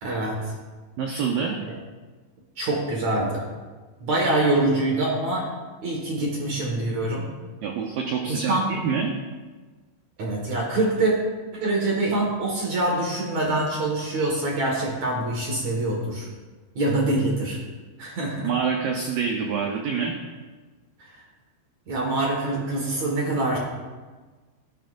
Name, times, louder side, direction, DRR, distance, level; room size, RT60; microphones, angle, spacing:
voice 1, 0.0-0.5 2.6-3.4 4.0-5.5 5.8-7.3 8.3-8.7 10.2-11.1 11.5-16.3 16.8-17.6 18.0-18.5 21.0-21.1 21.9-23.6, right 2 dB, 50° right, -2 dB, 2.2 m, -25 dB
voice 2, 1.0-1.6 7.6-9.1 18.4-20.2, right 6 dB, 80° right, 1 dB, 2.0 m, -26 dB
17.0 x 12.0 x 2.6 m, 1.3 s
omnidirectional pair, 5.4 m